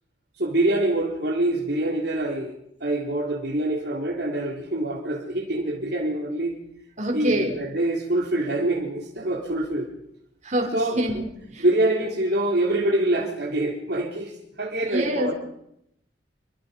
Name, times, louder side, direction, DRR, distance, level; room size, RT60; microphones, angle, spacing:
voice 1, 0.4-2.5 2.8-6.5 7.1-9.9 10.7-11.0 11.6-15.3, right 1 dB, 60° right, -1 dB, 4.1 m, -25 dB
voice 2, 7.0-7.6 10.4-11.7 14.8-15.3, right 1 dB, 40° right, 2 dB, 5.8 m, -26 dB
28.0 x 24.0 x 5.4 m, 0.76 s
head